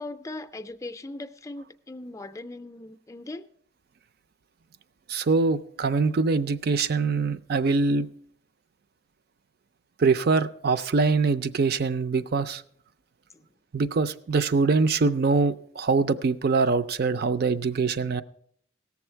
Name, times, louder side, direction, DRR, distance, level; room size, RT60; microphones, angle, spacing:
voice 1, 0.0-3.5, left 2 dB, 15° left, 0.4 m, -39 dB
voice 2, 5.1-8.1 10.0-12.6 13.7-18.2, right 4 dB, 55° right, 0.5 m, -23 dB
17.5 x 7.1 x 4.5 m
head